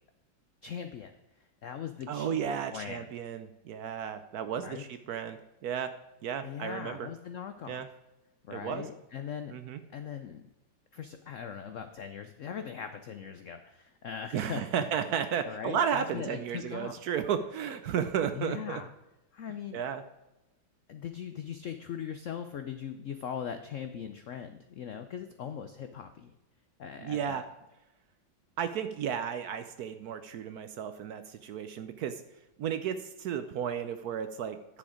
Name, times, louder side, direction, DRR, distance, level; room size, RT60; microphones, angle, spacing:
voice 1, 0.6-1.2 1.6-2.4 2.7-3.1 4.5-4.8 6.4-7.8 8.4-9.5 9.9-10.4 10.9-14.8 15.4-17.0 18.3-18.9 19.3-19.8 20.9-26.3 26.8-27.4, left 8 dB, 75° left, 8 dB, 0.7 m, -40 dB
voice 2, 2.1-5.9 6.2-7.1 7.7-7.9 8.5-8.8 9.5-9.8 14.3-18.8 19.7-20.0 27.0-27.4 28.6-32.2 32.6-34.6, right 8 dB, 70° right, 10 dB, 1.0 m, -33 dB
10.0 x 7.0 x 5.0 m, 0.98 s
omnidirectional pair, 2.0 m